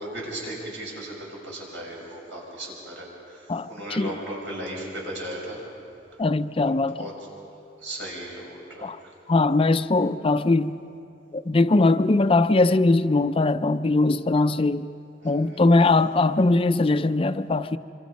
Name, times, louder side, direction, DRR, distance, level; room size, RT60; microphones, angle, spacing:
voice 1, 0.0-5.6 6.1-6.2 6.7-7.1 7.8-8.9 15.2-15.7, right 1 dB, 80° right, 6.0 m, -36 dB
voice 2, 3.5-4.1 6.2-7.1 8.8-9.0 9.3-10.8 11.3-14.9 15.2-17.8, left 2 dB, 30° left, 0.4 m, -21 dB
25.5 x 25.5 x 5.3 m
head